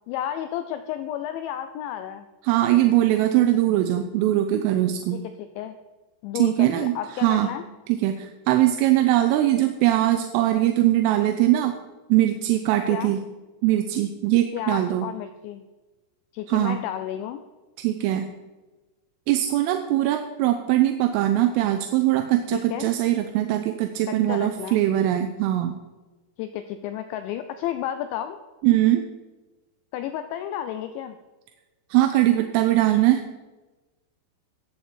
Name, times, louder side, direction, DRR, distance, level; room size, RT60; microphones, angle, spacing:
voice 1, 0.1-2.3 5.1-5.7 6.2-7.6 12.9-13.1 14.5-15.6 16.3-17.4 22.5-22.9 24.1-24.8 26.4-28.4 29.9-31.2, left 11 dB, 85° left, 9 dB, 2.6 m, -32 dB
voice 2, 2.5-5.2 6.4-7.0 7.2-7.5 7.9-11.7 12.1-13.2 13.6-15.1 16.5-16.8 17.8-18.3 19.3-25.8 28.6-29.1 31.9-33.2, right 14 dB, 85° right, 6 dB, 3.3 m, -21 dB
22.0 x 8.4 x 4.5 m, 1.2 s
omnidirectional pair, 6.0 m